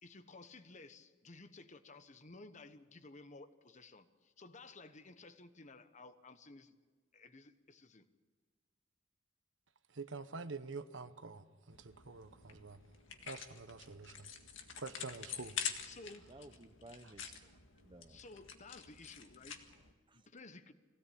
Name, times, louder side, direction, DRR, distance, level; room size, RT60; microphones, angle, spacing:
voice 1, 0.0-6.8 7.1-8.1 15.8-16.3 18.1-19.6 20.1-20.7, left 3 dB, 40° left, 1.1 m, -55 dB
voice 2, 9.9-12.8 13.3-14.3 14.8-15.6, right 4 dB, 80° right, 1.1 m, -47 dB
sound 1, 11.7-19.9, left 7 dB, 90° left, 1.8 m, -47 dB
voice 3, 16.3-18.2 19.6-20.3, right 2 dB, 25° right, 0.8 m, -58 dB
22.0 x 16.5 x 8.6 m
head